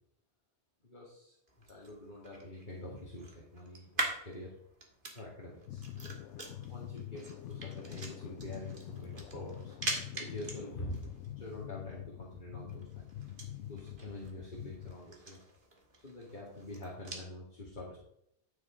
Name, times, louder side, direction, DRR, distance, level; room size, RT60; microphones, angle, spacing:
voice 1, 0.8-4.5 5.1-5.9 6.7-9.7 10.2-11.0 11.4-13.1 13.7-15.4 16.0-18.0, left 1 dB, 40° left, -4 dB, 2.3 m, -46 dB
sound 1, 1.5-17.3, right 2 dB, 45° right, 2.0 m, -45 dB
sound 2, 5.7-15.0, left 12 dB, 85° left, 0.9 m, -45 dB
10.5 x 6.4 x 5.0 m, 0.74 s
omnidirectional pair, 1.2 m